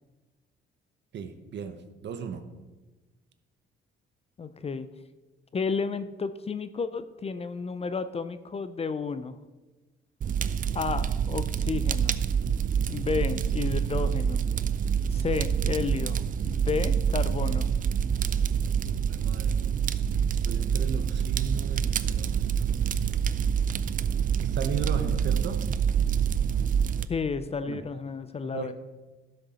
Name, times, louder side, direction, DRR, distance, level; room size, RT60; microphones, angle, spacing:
voice 1, 1.1-2.4 19.1-19.6 20.4-22.7 24.4-25.6 27.7-27.8 28.4-28.7, right 6 dB, 60° right, 9 dB, 0.9 m, -35 dB
voice 2, 4.4-4.9 5.5-9.4 10.7-12.2 12.9-14.5 15.1-17.7 27.1-28.7, left 5 dB, 30° left, 12 dB, 0.5 m, -32 dB
Fire, 10.2-27.0, right 7 dB, 45° right, 0.4 m, -26 dB
11.5 x 6.6 x 4.2 m, 1.2 s
cardioid pair, 90°, 20 cm